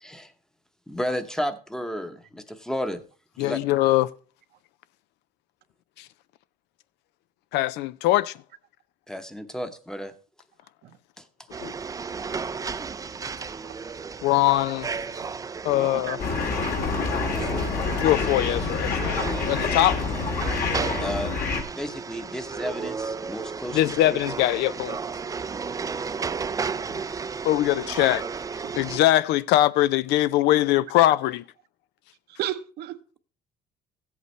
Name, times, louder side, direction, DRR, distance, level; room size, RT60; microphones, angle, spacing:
voice 1, 0.0-0.3 0.9-3.0 3.4-3.6 9.1-10.1 11.2-11.3 15.7-15.9 17.1-17.4 21.0-21.3 21.7-23.9, equal, 5° left, 0.9 m, -32 dB
voice 2, 3.4-4.1 6.0-6.1 7.5-8.4 11.6-11.7 14.2-14.9 15.6-16.2 18.0-20.0 23.7-25.0 26.9-27.0 27.4-28.2 28.8-31.4, left 15 dB, 85° left, 0.4 m, -22 dB
sound 1, 11.5-29.0, right 5 dB, 20° right, 0.4 m, -33 dB
sound 2, 16.2-21.6, left 4 dB, 60° left, 2.3 m, -27 dB
voice 3, 32.4-33.2, right 12 dB, 70° right, 0.8 m, -33 dB
15.0 x 8.1 x 3.2 m
cardioid pair, 110°, 17 cm